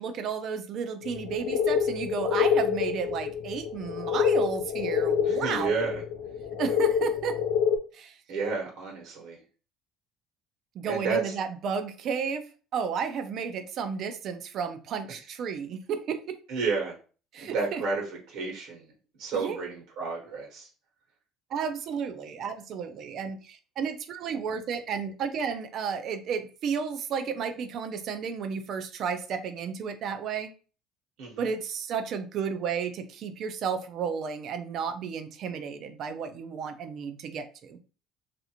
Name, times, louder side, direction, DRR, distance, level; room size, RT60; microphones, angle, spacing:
voice 1, 0.0-5.9 6.6-7.4 7.9-8.2 10.7-12.4 12.7-16.4 17.3-17.8 19.3-19.6 21.5-30.5 31.4-37.8, right 6 dB, 45° right, 8 dB, 0.4 m, -32 dB
sound 1, 1.0-7.8, left 7 dB, 80° left, 0.5 m, -27 dB
voice 2, 5.2-6.0 8.3-9.4 10.8-11.3 15.1-15.2 16.5-16.9 17.4-18.9 19.2-20.7 31.2-31.5, right 4 dB, 65° right, -1 dB, 1.0 m, -31 dB
3.2 x 2.5 x 2.8 m, 0.37 s
cardioid pair, 160°, 0 cm